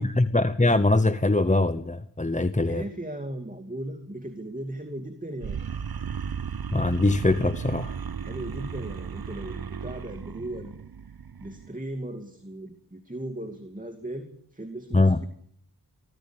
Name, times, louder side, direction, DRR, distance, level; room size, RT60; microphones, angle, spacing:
voice 1, 0.0-2.8 6.7-7.9 14.9-15.2, left 2 dB, 20° left, 11 dB, 0.9 m, -22 dB
voice 2, 2.6-5.6 8.2-10.8 11.4-15.3, right 1 dB, 20° right, 6 dB, 2.5 m, -37 dB
sound 1, 5.4-11.7, right 7 dB, 70° right, 0.8 m, -35 dB
25.0 x 16.0 x 8.9 m, 0.67 s
wide cardioid pair, 65°, 38 cm